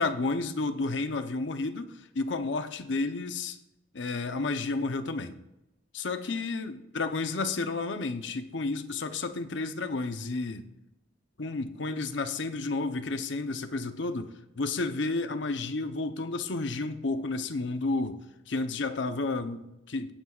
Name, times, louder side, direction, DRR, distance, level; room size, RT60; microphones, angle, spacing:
voice 1, 0.0-1.9 2.1-3.6 3.9-5.3 5.9-10.6 11.4-14.3 14.6-18.2 18.5-20.1, left 3 dB, 65° left, 9 dB, 0.8 m, -31 dB
17.0 x 8.9 x 2.5 m, 0.91 s
head